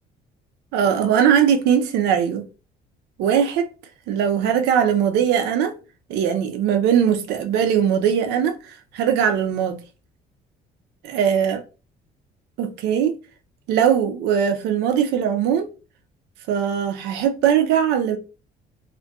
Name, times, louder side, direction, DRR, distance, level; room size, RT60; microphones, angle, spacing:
voice 1, 0.7-2.4 3.2-3.7 4.1-5.7 6.1-9.8 11.1-11.6 12.6-13.1 13.7-15.7 16.5-18.2, right 8 dB, 90° right, 0.5 m, -20 dB
2.3 x 2.2 x 3.7 m
cardioid pair, 110°, 17 cm